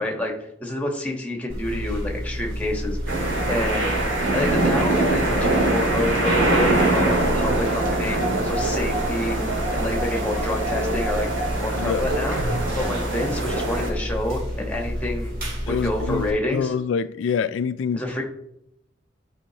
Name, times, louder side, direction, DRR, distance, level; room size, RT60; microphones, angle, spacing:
voice 1, 0.0-3.0 3.5-3.9 4.3-9.4 9.7-11.3 11.6-15.3 15.7-16.7 17.9-18.2, left 1 dB, 10° left, 1.3 m, -28 dB
sound 1, 1.5-16.3, equal, 50° right, 2.3 m, -30 dB
sound 2, 3.1-13.9, right 2 dB, 90° right, 1.9 m, -24 dB
voice 2, 15.7-16.3 16.5-18.0, left 6 dB, 80° left, 0.3 m, -25 dB
11.5 x 4.9 x 2.9 m
head